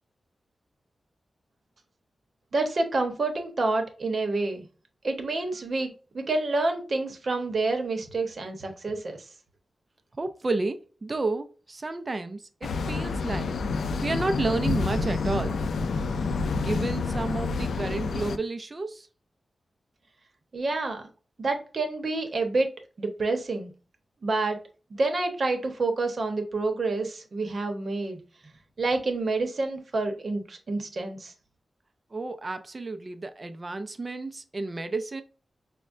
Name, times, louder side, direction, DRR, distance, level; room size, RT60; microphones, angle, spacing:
voice 1, 2.5-4.6 5.0-9.2 20.5-21.1 21.4-22.7 23.0-23.7 24.2-24.6 24.9-28.2 28.8-31.3, right 3 dB, 45° right, 0.8 m, -28 dB
voice 2, 10.2-13.5 14.0-15.6 16.6-19.1 32.1-35.2, right 3 dB, 30° right, 0.4 m, -31 dB
sound 1, 12.6-18.4, left 4 dB, 85° left, 0.3 m, -28 dB
5.2 x 2.1 x 2.4 m
wide cardioid pair, 145°, 0 cm